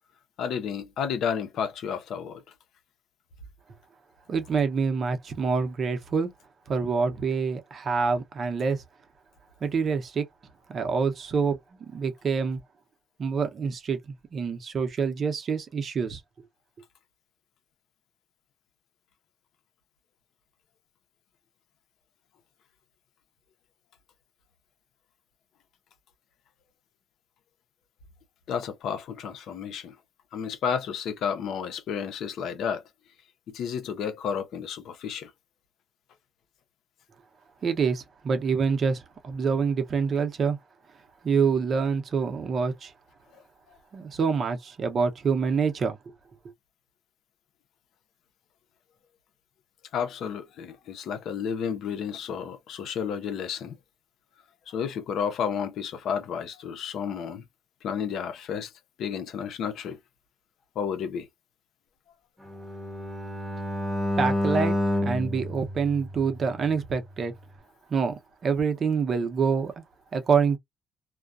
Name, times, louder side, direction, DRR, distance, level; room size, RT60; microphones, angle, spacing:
voice 1, 0.4-2.4 28.5-30.0 30.3-32.8 33.5-35.3 43.3-43.4 49.9-53.8 54.7-57.4 57.8-58.7 59.0-60.0 60.7-61.3, left 7 dB, 75° left, 0.7 m, -31 dB
voice 2, 4.3-6.3 6.7-8.8 9.6-10.2 10.7-11.6 11.9-12.6 13.2-16.2 37.6-40.6 41.2-42.9 43.9-46.0 64.2-64.7 65.0-67.3 67.9-68.1 68.4-69.8 70.1-70.6, right 5 dB, 45° right, 0.7 m, -26 dB
Bowed string instrument, 62.4-66.6, left 1 dB, 5° right, 1.0 m, -29 dB
2.3 x 2.2 x 2.5 m
cardioid pair, 115°, 0 cm